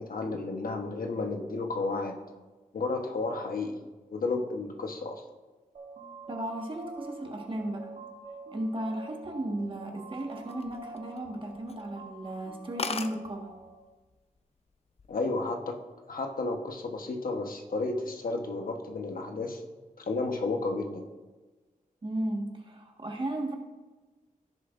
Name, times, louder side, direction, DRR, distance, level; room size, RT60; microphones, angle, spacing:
voice 1, 0.0-2.2 2.7-3.8 4.1-5.2 15.1-15.8 16.1-19.6 20.0-21.1, left 3 dB, 80° left, 3 dB, 1.1 m, -32 dB
sound 1, 5.7-13.7, right 3 dB, 60° right, 1.8 m, -47 dB
voice 2, 6.3-7.9 8.5-13.5 22.0-23.6, right 1 dB, 35° right, 1 dB, 1.5 m, -35 dB
sound 2, 10.3-11.3 11.7-11.9 12.3-12.4 12.5-12.6 12.8-13.2 14.1-14.4 14.7-15.2, left 4 dB, 45° left, 0.5 m, -36 dB
16.0 x 6.9 x 2.5 m, 1.2 s
wide cardioid pair, 130°, 15 cm